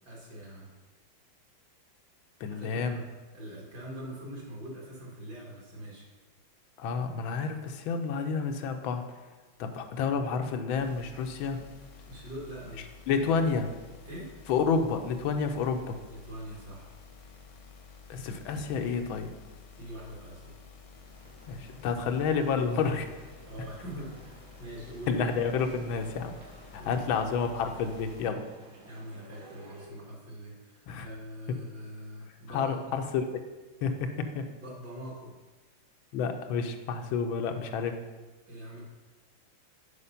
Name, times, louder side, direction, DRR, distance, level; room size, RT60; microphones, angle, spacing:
voice 1, 0.0-0.7 2.5-3.0 3.3-6.1 12.1-12.9 13.2-13.6 14.0-14.3 16.1-16.9 18.5-18.6 19.7-20.5 23.5-25.3 26.8-27.2 28.8-33.0 34.6-35.3 38.4-38.8, equal, 55° right, -4 dB, 2.5 m, -43 dB
voice 2, 2.4-3.0 6.8-9.1 9.6-11.6 13.1-13.7 14.5-16.0 18.1-19.3 21.5-23.1 25.1-26.4 26.7-28.5 30.9-31.1 32.5-33.4 33.8-34.5 36.1-38.0, left 5 dB, 90° left, 6 dB, 1.5 m, -30 dB
sound 1, 10.7-28.3, left 5 dB, 55° left, 0.9 m, -51 dB
sound 2, 20.9-29.9, right 1 dB, 80° right, 2.2 m, -54 dB
6.7 x 4.9 x 5.5 m, 1.2 s
omnidirectional pair, 2.2 m